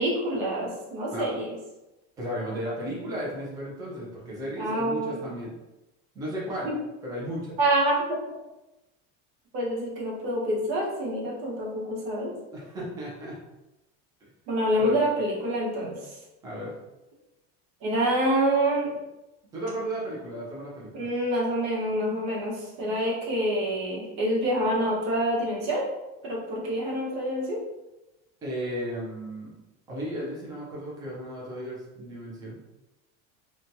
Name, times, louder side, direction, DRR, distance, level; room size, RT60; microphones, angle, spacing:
voice 1, 0.0-1.5 4.6-5.2 6.6-6.7 7.6-7.9 9.5-12.3 14.5-16.2 17.8-19.0 20.9-25.8 26.2-27.6, right 1 dB, 65° right, -4 dB, 1.0 m, -27 dB
voice 2, 2.2-5.5 6.1-6.7 7.0-7.6 12.5-13.4 14.2-14.3 14.8-15.0 16.4-16.7 19.5-21.1 28.4-29.5 29.9-32.6, equal, 10° right, -5 dB, 0.4 m, -34 dB
2.8 x 2.2 x 2.6 m, 1.0 s
cardioid pair, 180°, 33 cm